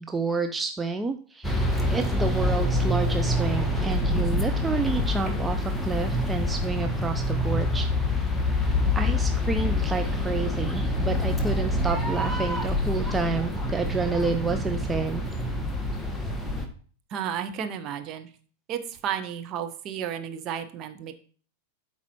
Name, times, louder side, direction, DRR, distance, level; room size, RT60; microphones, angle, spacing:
voice 1, 0.0-7.9 8.1-8.3 9.0-15.2, right 4 dB, 10° right, 6 dB, 0.4 m, -29 dB
sound 1, 1.4-16.7, left 1 dB, 5° left, 1.1 m, -26 dB
voice 2, 17.1-18.3 18.7-21.1, right 9 dB, 35° right, 7 dB, 0.8 m, -32 dB
12.0 x 4.1 x 3.0 m, 0.43 s
figure-of-eight pair, 90°, 0 cm